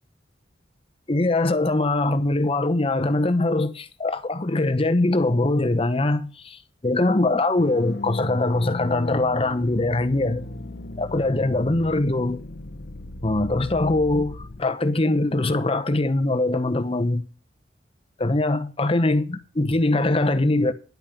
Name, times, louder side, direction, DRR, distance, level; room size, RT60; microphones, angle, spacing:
voice 1, 1.1-10.4 11.0-12.4 13.2-17.3 18.2-20.7, left 2 dB, 30° left, 0.9 m, -22 dB
sound 1, 7.6-14.6, left 2 dB, 60° left, 0.9 m, -36 dB
10.5 x 8.8 x 5.2 m
head